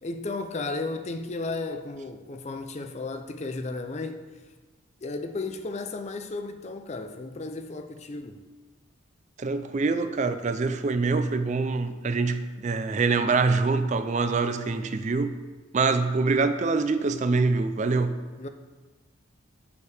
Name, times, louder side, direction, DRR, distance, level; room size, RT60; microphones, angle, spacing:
voice 1, 0.0-4.4 5.0-8.4 18.4-18.5, left 3 dB, 30° left, 0.5 m, -34 dB
voice 2, 9.4-15.4 15.7-18.2, right 4 dB, 35° right, 0.4 m, -25 dB
7.0 x 6.6 x 4.9 m
head